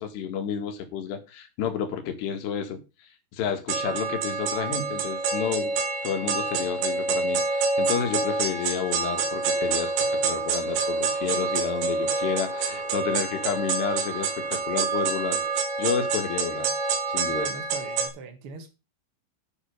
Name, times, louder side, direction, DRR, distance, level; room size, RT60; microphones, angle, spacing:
voice 1, 0.0-2.8 3.3-5.8 6.0-15.4 15.8-16.7 17.1-17.5, left 8 dB, 75° left, 3.9 m, -30 dB
sound 1, 3.7-18.1, right 4 dB, 85° right, 4.1 m, -27 dB
sound 2, 9.0-15.5, right 4 dB, 35° right, 2.3 m, -47 dB
voice 2, 17.3-18.7, right 5 dB, 65° right, 1.4 m, -39 dB
10.0 x 6.4 x 6.6 m
omnidirectional pair, 5.1 m